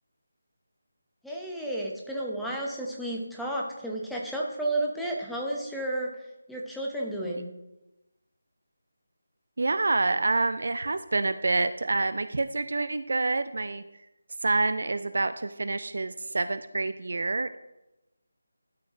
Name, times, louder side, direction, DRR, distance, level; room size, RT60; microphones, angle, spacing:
voice 1, 1.2-6.1 6.5-7.5, right 1 dB, ahead, -3 dB, 0.7 m, -32 dB
voice 2, 9.6-13.8 14.4-17.6, right 3 dB, 55° right, 11 dB, 0.3 m, -27 dB
12.0 x 4.9 x 2.5 m, 0.95 s
figure-of-eight pair, 160°, 0 cm